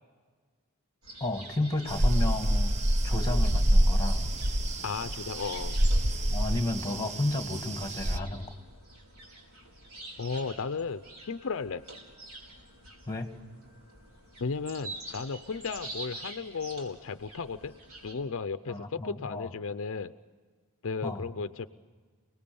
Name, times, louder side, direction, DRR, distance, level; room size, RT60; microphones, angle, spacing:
sound 1, 1.0-18.1, right 2 dB, 85° right, 4.8 m, -47 dB
voice 1, 1.2-4.4 6.3-8.5 13.1-13.3 18.7-19.5 21.0-21.3, left 2 dB, 15° left, 6 dB, 2.0 m, -32 dB
sound 2, 1.9-8.2, right 1 dB, 30° right, 0.8 m, -26 dB
voice 2, 4.8-5.8 10.2-11.8 14.4-17.7 18.0-20.1 20.8-21.7, left 5 dB, 65° left, 12 dB, 0.6 m, -34 dB
29.5 x 19.5 x 7.0 m, 1.5 s
head